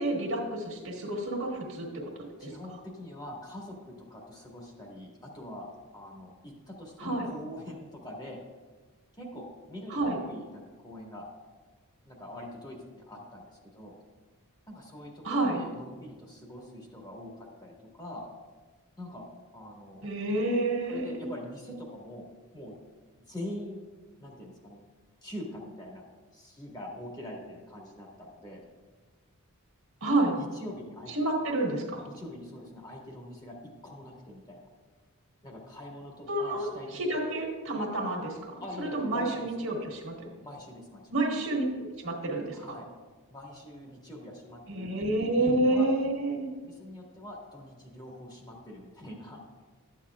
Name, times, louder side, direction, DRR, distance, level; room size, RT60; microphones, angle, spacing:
voice 1, 0.0-2.5 7.0-7.3 9.9-10.2 15.2-15.6 20.0-21.3 30.0-30.3 31.1-32.0 36.3-36.7 36.9-38.6 38.9-40.1 41.1-42.8 44.7-46.5, right 2 dB, 65° right, -1 dB, 1.6 m, -29 dB
voice 2, 2.4-5.7 5.9-8.4 9.2-11.3 12.1-14.0 14.7-18.3 19.0-19.2 19.5-20.1 20.9-22.3 22.5-22.7 23.3-23.8 24.2-24.8 25.2-26.1 26.3-28.7 30.3-31.1 32.1-34.7 35.4-37.0 38.6-39.5 40.4-41.1 42.5-42.9 43.3-44.9 45.4-45.9 46.6-49.4, left 1 dB, 20° left, -2 dB, 1.8 m, -43 dB
13.0 x 8.6 x 2.4 m, 1.3 s
head